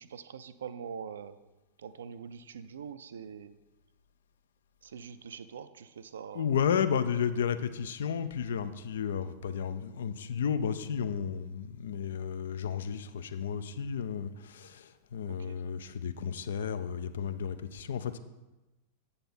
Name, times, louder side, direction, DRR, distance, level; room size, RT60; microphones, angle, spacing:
voice 1, 0.0-1.4 1.8-3.6 4.8-6.5 15.3-15.6, right 7 dB, 65° right, 12 dB, 0.4 m, -44 dB
voice 2, 6.3-18.2, left 7 dB, 60° left, 12 dB, 0.4 m, -32 dB
8.2 x 5.5 x 4.3 m, 1.1 s
figure-of-eight pair, 90°, 0 cm